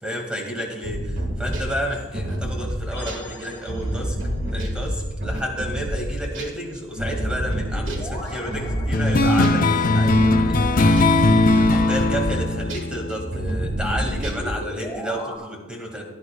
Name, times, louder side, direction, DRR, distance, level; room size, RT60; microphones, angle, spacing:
voice 1, 0.0-4.2 4.5-11.2 11.5-16.0, equal, 5° right, 1 dB, 2.1 m, -31 dB
sound 1, 0.8-6.6 7.0-9.7 10.0-13.0 13.3-14.5, right 1 dB, 65° right, 1.8 m, -28 dB
sound 2, 2.9-4.3 7.0-9.6 12.8-15.4, equal, 15° left, 3.6 m, -37 dB
sound 3, 8.9-13.8, left 2 dB, 45° left, 0.6 m, -19 dB
16.5 x 11.0 x 2.4 m, 1.2 s
head